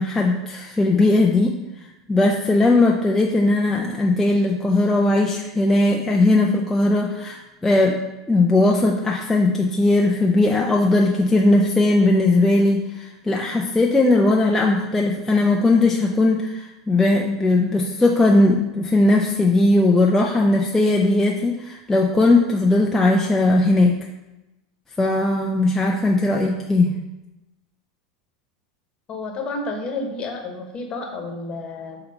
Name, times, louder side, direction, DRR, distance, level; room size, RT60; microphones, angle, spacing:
voice 1, 0.0-1.6 2.1-8.0 8.3-24.0 25.0-26.9, left 2 dB, 10° left, -1 dB, 0.6 m, -18 dB
voice 2, 29.1-32.0, left 3 dB, 30° left, 2 dB, 1.2 m, -30 dB
7.6 x 2.9 x 5.2 m, 1.0 s
hypercardioid pair, 90°, 3 cm